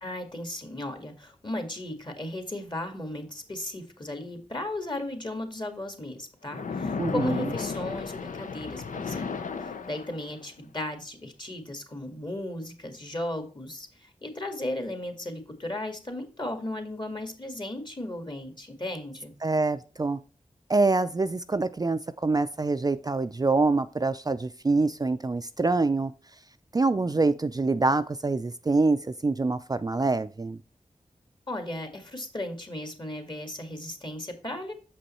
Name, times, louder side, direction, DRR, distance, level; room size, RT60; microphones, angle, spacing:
voice 1, 0.0-9.3 9.6-19.3 31.5-34.7, left 1 dB, 35° left, 6 dB, 1.9 m, -36 dB
Splash splatter, 6.5-10.5, left 5 dB, 85° left, 0.6 m, -34 dB
voice 2, 7.0-7.5 19.4-20.2 20.7-26.1 26.7-30.6, right 3 dB, 30° right, 10 dB, 0.4 m, -25 dB
6.9 x 5.4 x 4.3 m, 0.38 s
cardioid pair, 40°, 13 cm